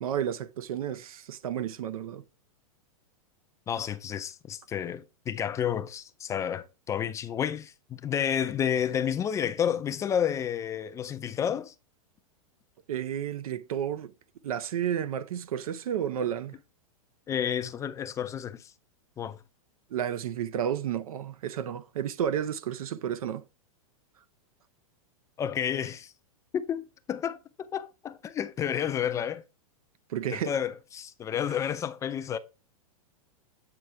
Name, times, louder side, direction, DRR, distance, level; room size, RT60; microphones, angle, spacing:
voice 1, 0.0-2.2 12.9-14.1 14.4-16.6 19.9-23.4 30.1-30.5, right 9 dB, 80° right, 0.6 m, -31 dB
voice 2, 3.7-11.7 17.3-18.7 19.2-19.4 25.4-26.1 26.5-26.8 27.1-29.4 30.3-32.4, left 8 dB, 15° left, 0.3 m, -30 dB
7.8 x 4.5 x 3.4 m
hypercardioid pair, 130°, 18 cm